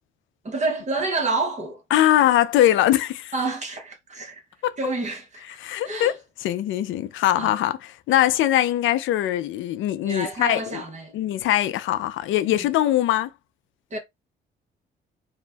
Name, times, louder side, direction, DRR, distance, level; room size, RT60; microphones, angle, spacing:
voice 1, 0.4-1.8 3.3-4.4 4.8-5.6 5.8-6.1 7.4-7.5 10.0-11.1 12.5-12.7 13.9-14.0, right 3 dB, 35° right, 0.8 m, -28 dB
voice 2, 1.9-3.3 4.6-4.7 5.6-6.1 6.4-7.8 8.1-10.8 11.1-13.3, left 13 dB, 80° left, 0.4 m, -21 dB
2.5 x 2.1 x 3.3 m
cardioid pair, 90°, 20 cm